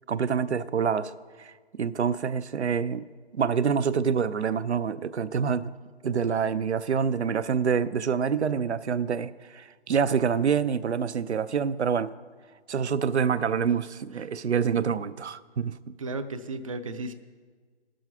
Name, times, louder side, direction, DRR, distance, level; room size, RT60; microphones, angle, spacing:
voice 1, 0.1-1.1 1.4-3.1 3.3-5.7 6.0-12.1 12.7-15.9, right 6 dB, 80° right, 15 dB, 0.5 m, -26 dB
voice 2, 16.0-17.1, right 2 dB, 30° right, 10 dB, 0.5 m, -35 dB
16.0 x 6.3 x 5.8 m, 1.5 s
figure-of-eight pair, 135°, 33 cm